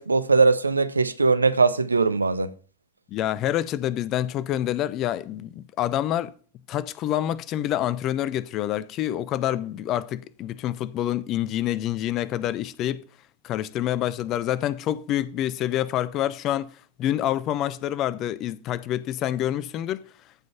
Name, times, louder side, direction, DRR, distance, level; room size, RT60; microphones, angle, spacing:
voice 1, 0.0-2.5, right 4 dB, 80° right, 0.8 m, -20 dB
voice 2, 3.1-6.3 6.7-13.0 13.4-20.0, left 12 dB, 35° left, 0.7 m, -27 dB
14.5 x 5.3 x 5.8 m
figure-of-eight pair, 90°, 0 cm